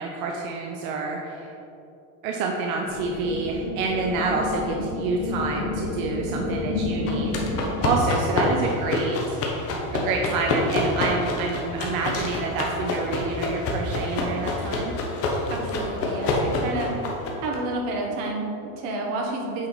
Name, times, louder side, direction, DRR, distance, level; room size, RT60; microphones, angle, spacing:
voice 1, 0.0-1.5 2.2-9.4 9.9-14.9, right 3 dB, 85° right, 1 dB, 0.9 m, -28 dB
sound 1, 2.9-7.9, left 3 dB, 80° left, 1.5 m, -30 dB
sound 2, 7.1-17.6, left 2 dB, 35° left, 1.1 m, -27 dB
voice 2, 15.4-16.9 17.4-19.7, right 2 dB, 60° right, 0 dB, 1.5 m, -30 dB
8.6 x 4.6 x 4.1 m, 2.7 s
cardioid pair, 160°, 40 cm